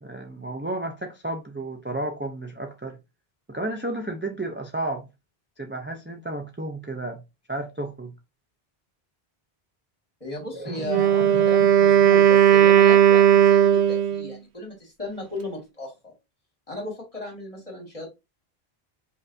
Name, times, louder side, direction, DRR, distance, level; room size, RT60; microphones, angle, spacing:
voice 1, 0.0-3.0 3.5-5.1 5.6-7.2 7.5-8.1 10.5-11.7, right 2 dB, 20° right, 0.3 m, -32 dB
voice 2, 10.2-16.1 16.7-18.1, left 1 dB, 35° left, 1.9 m, -36 dB
Wind instrument woodwind instrument, 10.8-14.3, right 10 dB, 85° right, 0.9 m, -16 dB
5.4 x 2.6 x 2.6 m
omnidirectional pair, 1.1 m